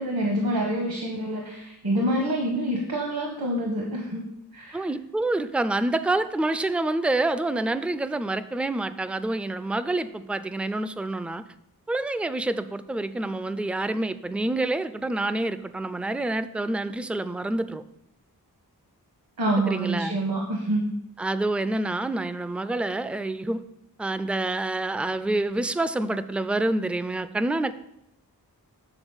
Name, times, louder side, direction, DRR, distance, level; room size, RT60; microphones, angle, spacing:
voice 1, 0.0-4.3 4.5-4.9 19.4-20.9, right 1 dB, 70° right, 0 dB, 1.2 m, -27 dB
voice 2, 4.7-11.4 11.9-17.8 19.7-20.2 21.2-23.6 24.0-27.7, right 2 dB, 5° right, 13 dB, 0.3 m, -27 dB
8.0 x 3.7 x 6.3 m, 0.79 s
wide cardioid pair, 50°, 39 cm